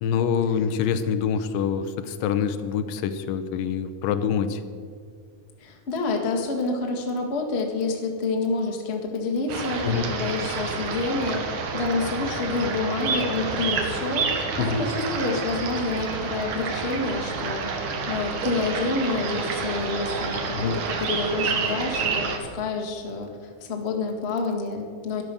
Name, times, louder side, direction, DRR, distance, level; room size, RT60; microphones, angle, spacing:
voice 1, 0.0-4.6 9.8-10.1 14.6-14.8 20.5-20.8, left 7 dB, 80° left, 10 dB, 2.4 m, -25 dB
voice 2, 5.6-14.3 14.7-17.7 18.1-25.2, left 3 dB, 35° left, 2 dB, 1.0 m, -28 dB
sound 1, 9.5-22.4, right 4 dB, 65° right, 2.7 m, -29 dB
12.5 x 11.5 x 6.9 m, 2.1 s
omnidirectional pair, 4.0 m